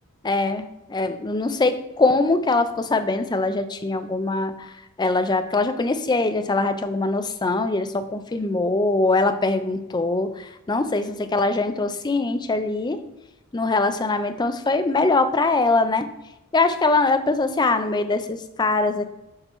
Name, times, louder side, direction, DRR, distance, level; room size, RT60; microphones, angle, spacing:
voice 1, 0.2-4.5 5.0-13.0 13.5-16.1 16.5-19.1, left 3 dB, 20° left, 9 dB, 0.4 m, -22 dB
6.7 x 4.5 x 4.3 m, 0.95 s
head